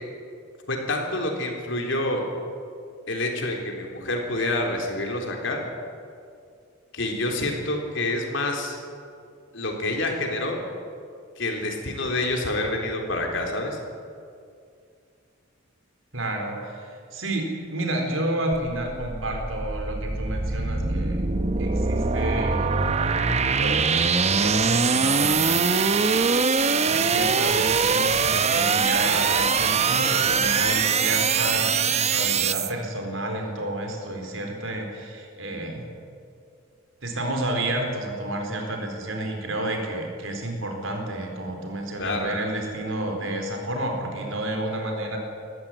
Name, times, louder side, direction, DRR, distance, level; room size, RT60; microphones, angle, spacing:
voice 1, 0.7-2.2 3.1-5.6 6.9-8.8 9.5-10.7 11.4-13.8 42.0-42.3, left 2 dB, 70° left, 2 dB, 3.7 m, -27 dB
voice 2, 16.1-21.2 21.6-22.7 23.5-25.8 26.9-35.8 37.0-45.2, right 1 dB, 80° right, 3 dB, 4.1 m, -30 dB
sound 1, 18.5-32.7, right 5 dB, 35° right, 0.8 m, -23 dB
19.5 x 15.0 x 9.1 m, 2.3 s
head